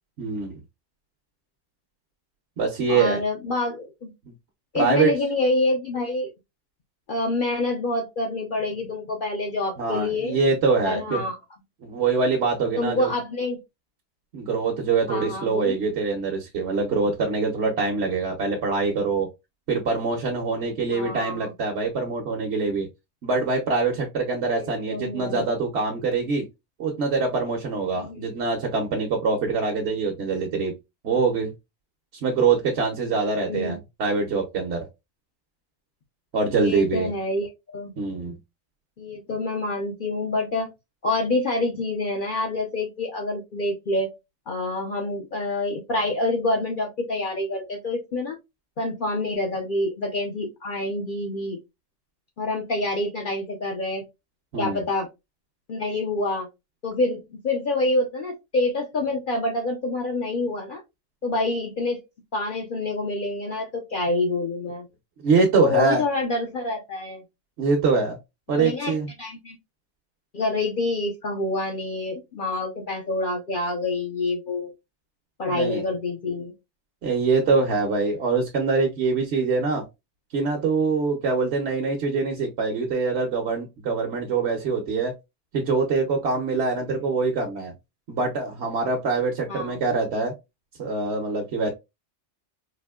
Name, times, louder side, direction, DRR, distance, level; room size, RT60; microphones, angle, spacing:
voice 1, 0.2-0.6 2.6-3.2 4.7-5.1 9.8-11.2 11.8-13.1 14.3-19.3 19.7-22.9 23.2-26.4 26.8-30.7 31.0-31.5 32.2-34.9 36.3-37.1 38.0-38.4 54.5-54.8 65.2-66.0 67.6-68.2 68.5-69.1 75.5-75.8 77.0-79.8 80.3-85.1 85.5-87.7 88.1-90.3 90.8-91.7, right 4 dB, 70° right, 1 dB, 1.0 m, -24 dB
voice 2, 2.9-4.1 4.7-6.3 7.1-10.4 10.8-11.4 12.7-13.6 15.1-15.7 20.9-21.5 24.4-25.4 27.9-28.4 33.1-33.8 36.5-37.9 39.0-40.7 41.0-44.1 44.5-48.4 48.8-51.6 52.4-54.0 54.6-55.1 55.7-56.5 56.8-60.8 61.2-62.0 62.3-64.9 65.6-67.2 68.6-69.6 70.3-74.7 75.4-76.5 89.5-89.8, left 2 dB, 55° left, 1 dB, 0.7 m, -27 dB
4.2 x 2.6 x 2.2 m, 0.22 s
omnidirectional pair, 1.2 m